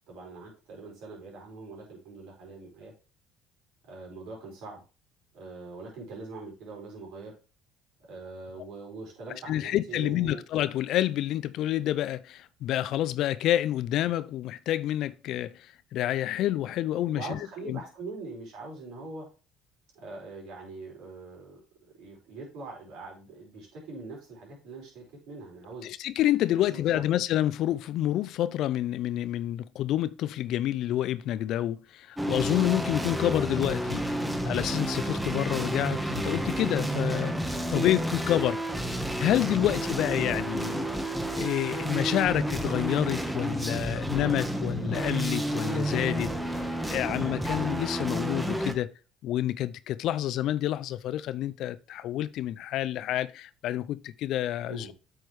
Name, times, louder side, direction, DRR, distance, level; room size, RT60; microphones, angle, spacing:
voice 1, 0.1-2.9 3.9-4.8 5.3-7.3 8.0-10.4 17.1-19.2 19.9-21.6 22.0-25.9 26.7-27.0 37.7-38.0 39.5-39.7 54.7-54.9, right 3 dB, 70° right, 4.8 m, -42 dB
voice 2, 9.5-15.6 15.9-17.4 17.7-17.8 25.8-34.0 34.4-37.3 37.7-38.6 39.2-40.9 41.3-46.3 46.6-48.9 49.2-54.9, left 13 dB, 65° left, 0.5 m, -28 dB
sound 1, 32.2-48.7, right 1 dB, 5° right, 1.4 m, -30 dB
8.6 x 6.3 x 3.2 m
hypercardioid pair, 65°, 0 cm